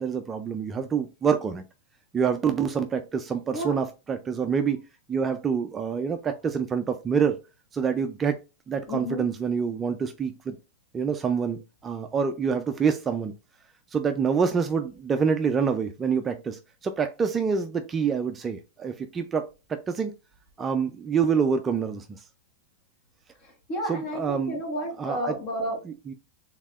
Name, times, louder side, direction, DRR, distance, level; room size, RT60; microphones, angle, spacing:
voice 1, 0.0-1.6 2.1-4.8 5.1-7.4 7.7-8.4 8.7-10.6 10.9-13.3 13.9-20.1 20.6-22.2 23.9-24.5 25.0-25.3 25.9-26.1, right 6 dB, 15° right, 0.3 m, -26 dB
voice 2, 8.9-9.2 23.4-25.8, equal, 40° left, 1.5 m, -31 dB
4.6 x 3.4 x 2.4 m
supercardioid pair, 160°, 0 cm